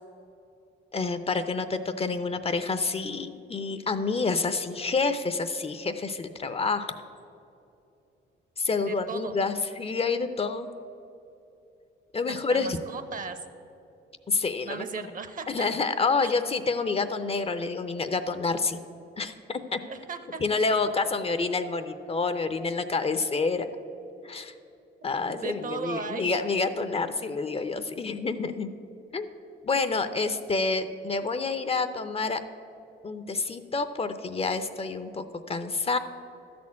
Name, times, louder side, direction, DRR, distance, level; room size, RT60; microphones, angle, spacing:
voice 1, 0.9-6.9 8.6-10.7 12.1-12.8 14.3-15.1 15.5-18.8 19.2-19.8 20.4-23.7 24.2-24.5 25.0-28.7 29.1-29.3 29.6-32.4 33.0-36.0, left 4 dB, 30° left, 10 dB, 0.5 m, -28 dB
voice 2, 8.9-9.3 12.3-13.4 14.6-15.7 16.2-16.3 19.9-20.4 25.4-26.4, right 5 dB, 45° right, 10 dB, 0.8 m, -36 dB
12.5 x 4.3 x 8.4 m, 2.7 s
cardioid pair, 90°, 20 cm